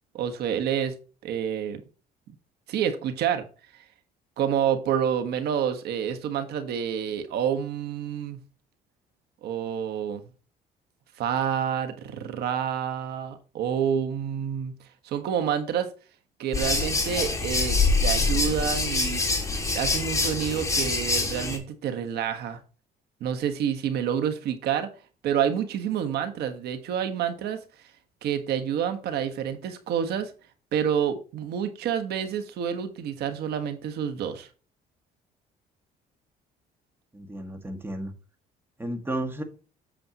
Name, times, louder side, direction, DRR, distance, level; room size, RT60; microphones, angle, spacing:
voice 1, 0.1-0.9 1.2-1.8 2.7-3.4 4.4-8.4 9.4-10.2 11.2-14.7 15.0-15.9 16.4-19.2 19.7-22.6 23.2-24.9 25.2-27.6 28.2-30.3 30.7-34.5, right 8 dB, 75° right, 8 dB, 1.4 m, -28 dB
sound 1, 16.5-21.6, left 3 dB, 20° left, 2.3 m, -25 dB
voice 2, 37.1-38.1 38.8-39.4, right 1 dB, 15° right, 5 dB, 1.9 m, -32 dB
8.6 x 7.0 x 3.0 m, 0.36 s
cardioid pair, 110°, 17 cm